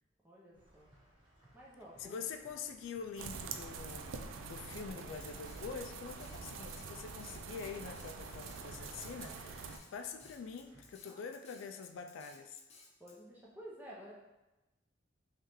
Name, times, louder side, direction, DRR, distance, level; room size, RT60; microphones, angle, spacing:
voice 1, 0.2-0.9 1.5-2.4 11.1-11.2 13.0-14.1, equal, 10° right, -4 dB, 0.6 m, -52 dB
sound 1, 0.5-11.0, right 1 dB, 25° right, 1.1 m, -64 dB
voice 2, 2.0-12.6, left 6 dB, 75° left, 6 dB, 0.3 m, -45 dB
sound 2, 3.2-9.8, right 5 dB, 85° right, 0.3 m, -45 dB
Drum kit, 5.2-13.1, left 4 dB, 35° left, 0.6 m, -59 dB
3.6 x 3.2 x 3.0 m, 1.0 s
head